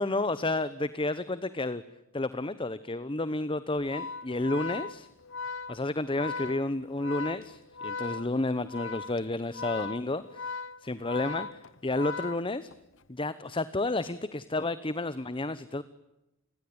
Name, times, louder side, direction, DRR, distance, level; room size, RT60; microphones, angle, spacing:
voice 1, 0.0-1.8 2.1-5.1 5.7-12.7 13.1-15.8, left 2 dB, 25° left, 15 dB, 0.9 m, -31 dB
Organ, 3.8-13.0, left 4 dB, 65° left, 1.0 m, -38 dB
29.5 x 22.0 x 8.8 m, 0.96 s
head